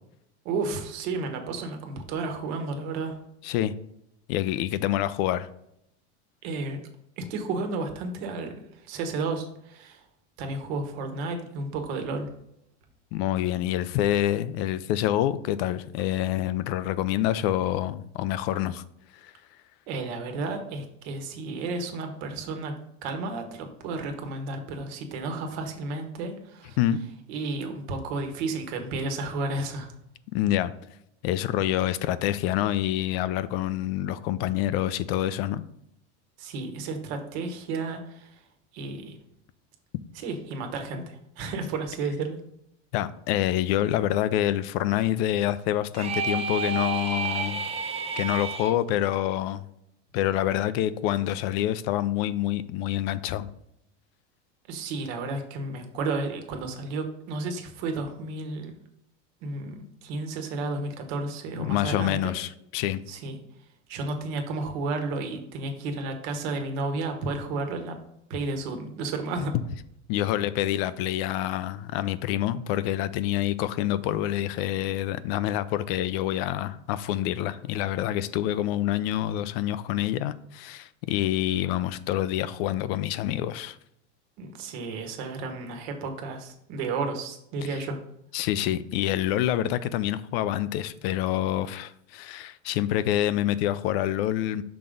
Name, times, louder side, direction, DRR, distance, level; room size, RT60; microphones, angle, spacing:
voice 1, 0.4-3.2 6.4-6.8 7.2-10.0 10.4-12.3 19.9-22.7 23.0-26.8 27.3-29.9 36.4-38.4 38.7-39.2 40.1-42.4 54.7-58.7 59.4-62.3 63.1-63.4 63.9-68.0 68.3-69.5 84.4-88.0, right 3 dB, 65° right, 1.4 m, -32 dB
voice 2, 3.4-3.7 4.3-5.5 13.1-18.8 19.1-19.3 26.8-27.0 30.3-30.7 31.2-35.6 42.9-47.6 48.2-49.7 50.1-53.5 61.6-63.0 70.1-83.8 88.3-94.6, left 13 dB, 60° left, 0.5 m, -27 dB
sound 1, 45.9-48.7, right 6 dB, 20° right, 0.5 m, -30 dB
6.0 x 3.7 x 5.2 m
supercardioid pair, 130°, 34 cm